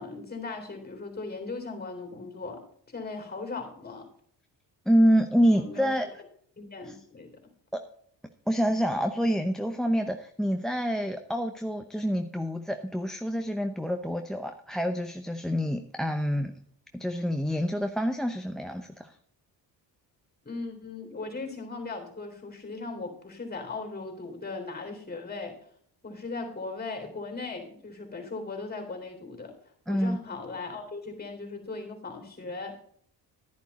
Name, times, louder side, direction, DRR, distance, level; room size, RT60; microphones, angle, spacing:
voice 1, 0.0-4.1 5.5-5.9 6.6-7.3 20.4-25.6 26.0-29.5 29.9-32.8, left 3 dB, 20° left, 4 dB, 3.7 m, -38 dB
voice 2, 4.9-6.1 6.9-7.0 7.7-7.8 8.5-16.5 16.9-19.1 29.9-30.2, equal, ahead, 7 dB, 0.7 m, -27 dB
11.0 x 10.5 x 4.2 m, 0.63 s
cardioid pair, 90°, 43 cm